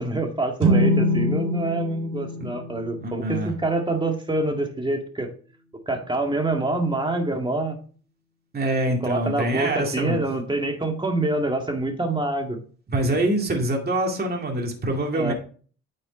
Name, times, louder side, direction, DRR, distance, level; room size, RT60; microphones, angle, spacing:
voice 1, 0.0-5.3 5.9-7.8 9.0-12.6 15.1-15.3, right 2 dB, 15° right, 4 dB, 1.9 m, -26 dB
sound 1, 0.6-4.2, equal, 80° right, 2.1 m, -24 dB
voice 2, 3.0-3.5 8.5-10.2 12.9-15.3, right 1 dB, 30° right, 1 dB, 2.2 m, -25 dB
9.2 x 5.4 x 4.3 m, 0.42 s
cardioid pair, 90°, 30 cm